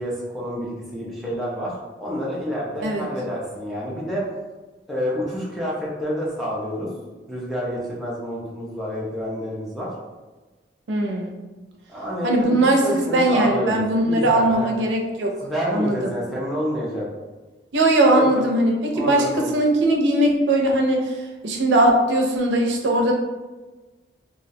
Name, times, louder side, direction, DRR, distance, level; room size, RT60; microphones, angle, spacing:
voice 1, 0.0-1.7 2.0-4.3 4.9-6.9 7.3-9.9 11.9-14.8 15.4-17.1 18.2-18.4 18.9-19.5, equal, ahead, -7 dB, 0.4 m, -28 dB
voice 2, 10.9-11.3 12.2-15.3 15.7-16.1 17.7-21.2 21.4-23.1, right 1 dB, 85° right, 0 dB, 0.4 m, -19 dB
2.3 x 2.1 x 2.6 m, 1.2 s
head